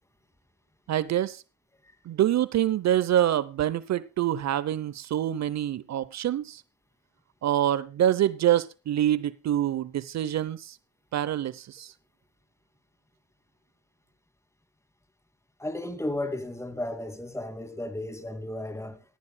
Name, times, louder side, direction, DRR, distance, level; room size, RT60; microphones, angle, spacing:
voice 1, 0.9-1.4 2.1-6.6 7.4-10.8 11.1-11.9, right 11 dB, 60° right, 0.8 m, -26 dB
voice 2, 15.6-19.0, left 1 dB, 10° left, 2.3 m, -34 dB
18.0 x 13.5 x 2.3 m
cardioid pair, 90°, 30 cm